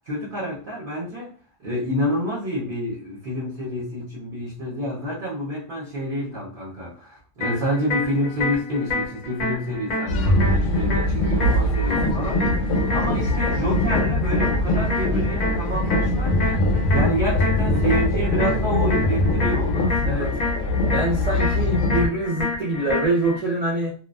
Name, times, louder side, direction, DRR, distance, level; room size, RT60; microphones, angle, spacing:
voice 1, 0.0-1.3 1.6-20.3, equal, 50° right, 0.7 m, -28 dB
sound 1, 7.4-23.4, left 2 dB, 45° left, 0.6 m, -29 dB
sound 2, 10.1-22.1, left 1 dB, 80° left, 0.9 m, -22 dB
voice 2, 20.0-20.4 20.9-23.9, right 2 dB, 75° right, 0.3 m, -24 dB
2.3 x 2.3 x 2.2 m
omnidirectional pair, 1.3 m